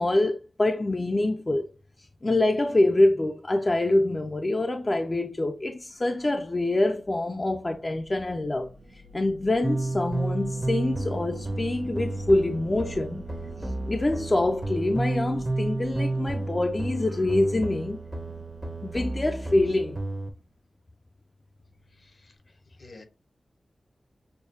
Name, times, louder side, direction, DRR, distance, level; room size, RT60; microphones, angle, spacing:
voice 1, 0.0-1.7 2.2-8.7 9.1-13.2 13.9-18.0 18.8-20.0, left 2 dB, 30° left, 0.5 m, -25 dB
sound 1, 6.0-20.4, equal, 90° right, 1.1 m, -47 dB
sound 2, 9.6-20.3, right 2 dB, 25° right, 0.7 m, -31 dB
voice 2, 21.9-23.0, left 3 dB, 60° left, 1.0 m, -52 dB
6.5 x 2.3 x 2.7 m
wide cardioid pair, 85°, 0 cm